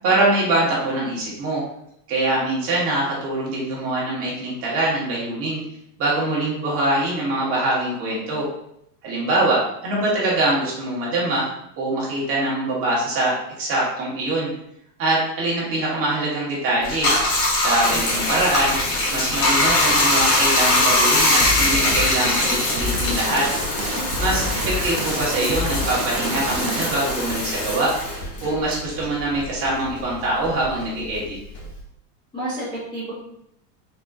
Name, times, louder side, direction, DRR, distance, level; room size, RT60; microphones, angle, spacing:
voice 1, 0.0-1.6 2.1-5.6 6.0-8.4 9.0-11.5 11.8-14.5 15.0-17.1 17.5-18.7 19.1-23.5 24.2-27.9 28.4-31.4, right 2 dB, 25° right, -5 dB, 1.1 m, -23 dB
Bathtub (filling or washing), 16.8-29.7 30.0-31.8, left 2 dB, 60° left, 1.5 m, -22 dB
sound 1, 21.4-27.2, equal, 45° right, 0.4 m, -29 dB
voice 2, 23.9-24.3 32.3-33.1, right 1 dB, 10° left, -11 dB, 0.8 m, -32 dB
4.1 x 3.7 x 2.3 m, 0.76 s
supercardioid pair, 170°, 50 cm